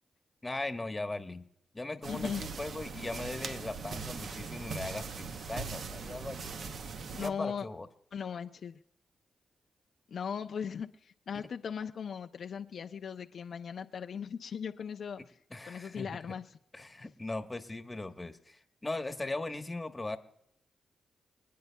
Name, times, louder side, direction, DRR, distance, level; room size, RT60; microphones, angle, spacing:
voice 1, 0.4-1.4 1.7-6.6 7.2-7.9 15.5-16.2 16.7-20.2, left 2 dB, 25° left, 7 dB, 1.2 m, -39 dB
sound 1, 2.0-7.3, right 5 dB, 70° right, 0.8 m, -40 dB
voice 2, 2.1-2.4 7.1-7.7 8.1-8.7 10.1-15.2 15.7-16.4, left 7 dB, 70° left, 6 dB, 0.5 m, -38 dB
25.0 x 9.4 x 2.3 m, 0.74 s
cardioid pair, 60°, 0 cm